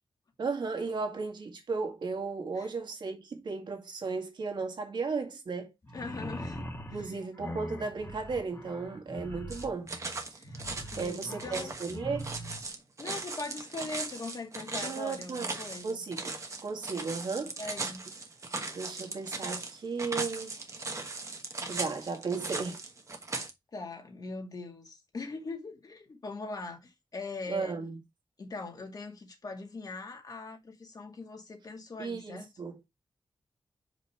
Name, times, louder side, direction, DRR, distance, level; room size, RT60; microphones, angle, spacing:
voice 1, 0.4-5.7 6.9-9.9 11.0-12.3 14.8-15.5 15.8-16.3 16.6-17.6 18.7-20.5 21.7-22.8 27.5-28.0 32.0-32.8, right 4 dB, 70° right, 1.9 m, -35 dB
sound 1, 5.8-12.7, left 1 dB, 35° left, 1.5 m, -42 dB
voice 2, 5.9-7.0 10.4-10.6 10.9-11.8 13.0-16.0 17.6-18.0 23.7-27.8 28.4-32.5, left 3 dB, 50° left, 2.1 m, -41 dB
sound 2, 9.5-23.5, right 3 dB, 40° right, 1.2 m, -38 dB
5.3 x 5.2 x 4.3 m
wide cardioid pair, 120°, 8 cm